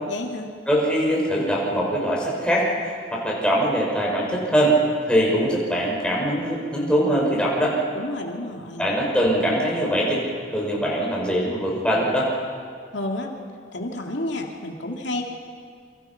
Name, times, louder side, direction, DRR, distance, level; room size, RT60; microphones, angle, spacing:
voice 1, 0.1-0.5 7.9-8.9 12.9-13.3 13.7-15.2, left 1 dB, 80° left, 2 dB, 2.3 m, -30 dB
voice 2, 0.7-2.7 3.1-4.7 5.1-7.8 8.8-10.2 10.5-12.3, equal, 5° left, -4 dB, 5.8 m, -22 dB
28.5 x 25.0 x 5.8 m, 2.1 s
head